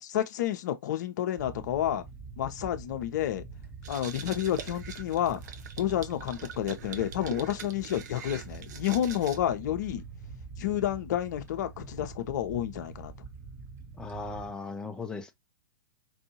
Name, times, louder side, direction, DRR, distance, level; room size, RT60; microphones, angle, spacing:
voice 1, 0.0-2.0 2.4-3.4 3.9-5.4 5.8-10.0 10.6-13.1, left 11 dB, 55° left, 0.7 m, -30 dB
sound 1, 1.4-14.5, right 4 dB, 20° right, 1.0 m, -45 dB
sound 2, 3.8-9.4, right 8 dB, 55° right, 0.7 m, -43 dB
voice 2, 14.0-15.3, left 3 dB, 5° left, 0.5 m, -37 dB
4.7 x 2.6 x 2.8 m
figure-of-eight pair, 105°, 11 cm